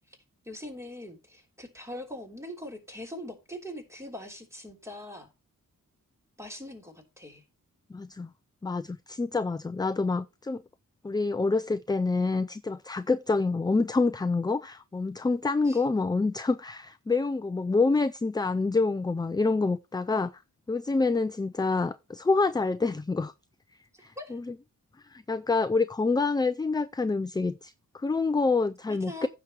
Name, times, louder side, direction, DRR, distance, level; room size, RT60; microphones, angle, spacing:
voice 1, 0.4-5.3 6.4-7.4 15.6-15.8 23.9-24.4 28.9-29.3, left 1 dB, 10° right, 3.2 m, -42 dB
voice 2, 7.9-8.3 8.6-10.6 11.0-20.4 20.7-23.3 24.0-24.5 25.1-29.3, left 3 dB, 15° left, 0.4 m, -27 dB
15.5 x 6.1 x 2.9 m
wide cardioid pair, 115°, 33 cm